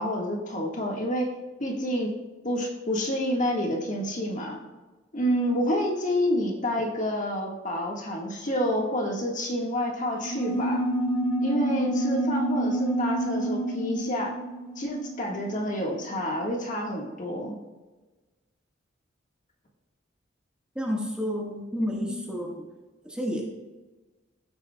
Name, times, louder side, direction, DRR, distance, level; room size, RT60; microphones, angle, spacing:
voice 1, 0.0-1.3 1.6-2.2 2.4-4.6 5.1-10.8 11.4-14.3 14.8-17.6 21.8-22.4, equal, 40° left, 0 dB, 1.6 m, -28 dB
sound 1, 10.1-16.1, right 1 dB, 75° left, 1.6 m, -28 dB
voice 2, 20.7-22.6 23.1-23.4, equal, 5° right, -2 dB, 1.5 m, -30 dB
15.0 x 8.5 x 2.3 m, 1.2 s
head